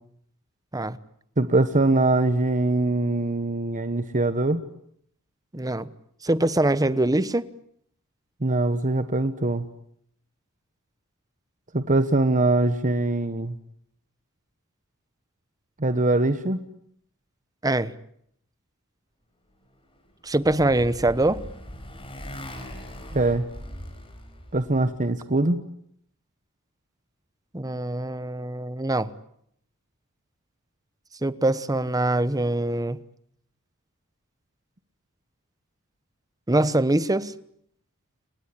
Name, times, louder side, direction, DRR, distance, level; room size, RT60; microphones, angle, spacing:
voice 1, 1.4-4.6 8.4-9.7 11.7-13.6 15.8-16.6 23.1-23.5 24.5-25.6, right 2 dB, 35° right, 1.2 m, -22 dB
voice 2, 5.5-5.9 6.2-7.4 17.6-17.9 20.2-21.4 27.5-29.1 31.2-33.0 36.5-37.3, right 2 dB, 15° right, 1.0 m, -23 dB
Motorcycle, 19.9-24.9, equal, 25° left, 5.4 m, -40 dB
29.5 x 17.5 x 10.0 m
head